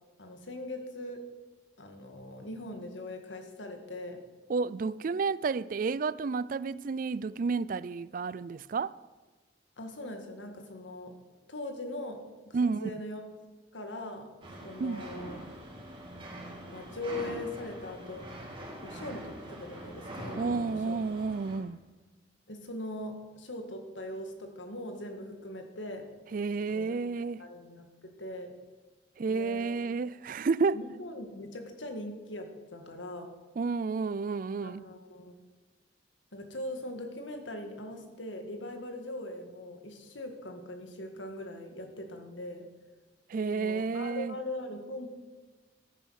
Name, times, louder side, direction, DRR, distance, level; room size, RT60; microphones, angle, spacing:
voice 1, 0.2-1.2 1.8-4.2 9.8-11.1 11.5-12.2 12.4-13.3 13.7-14.3 14.6-15.4 16.6-18.3 18.8-21.0 22.5-26.1 26.7-27.0 27.4-28.5 29.3-29.7 30.7-33.3 34.6-35.3 36.3-42.7 43.5-45.1, left 1 dB, 90° left, 2.0 m, -41 dB
voice 2, 4.5-9.0 12.5-12.8 14.8-15.0 20.4-21.8 26.3-27.4 29.2-30.8 33.6-34.8 43.3-44.3, right 4 dB, 45° right, 0.4 m, -31 dB
sound 1, 14.4-21.6, right 1 dB, 30° right, 2.7 m, -44 dB
13.5 x 9.7 x 6.5 m
head